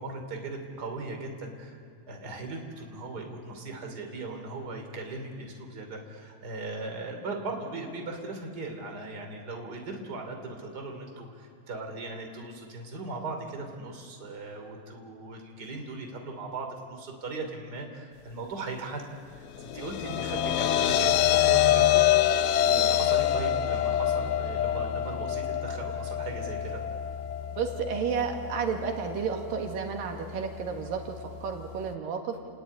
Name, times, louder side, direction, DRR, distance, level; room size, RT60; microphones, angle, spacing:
voice 1, 0.0-1.8 2.1-22.0 22.6-26.8, right 3 dB, 30° right, 3 dB, 3.4 m, -38 dB
sound 1, 19.6-31.9, left 11 dB, 75° left, 2.3 m, -27 dB
voice 2, 27.5-32.4, right 6 dB, 75° right, 3 dB, 3.5 m, -32 dB
29.0 x 20.0 x 9.5 m, 2.3 s
omnidirectional pair, 4.0 m